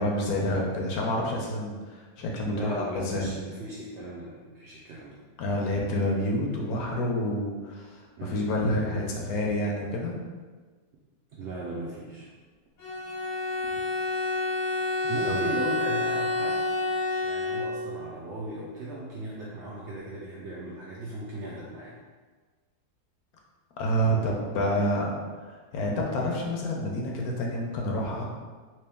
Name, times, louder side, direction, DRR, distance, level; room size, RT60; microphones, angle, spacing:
voice 1, 0.0-3.3 5.4-10.2 15.3-15.4 23.8-25.1 25.4-28.3, equal, 70° left, -1 dB, 1.0 m, -28 dB
voice 2, 2.5-5.2 8.2-8.3 11.3-12.3 15.0-16.7 17.2-22.0, right 1 dB, 80° right, -4 dB, 0.6 m, -37 dB
Bowed string instrument, 12.8-18.0, left 2 dB, 90° left, 1.4 m, -29 dB
3.0 x 2.9 x 3.4 m, 1.4 s
omnidirectional pair, 1.7 m